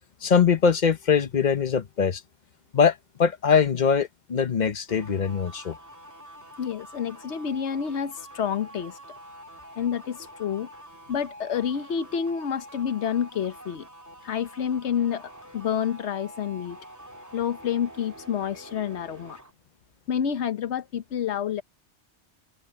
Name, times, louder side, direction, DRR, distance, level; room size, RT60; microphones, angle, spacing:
voice 1, 0.2-2.2 2.7-5.8, left 6 dB, 45° left, 0.9 m, -22 dB
sound 1, 4.9-19.5, equal, 15° right, 2.7 m, -46 dB
voice 2, 6.6-9.0 9.8-10.7 11.1-13.9 14.2-16.8 17.3-19.4 20.1-21.6, left 8 dB, 75° left, 1.2 m, -29 dB
omnidirectional pair, 1.2 m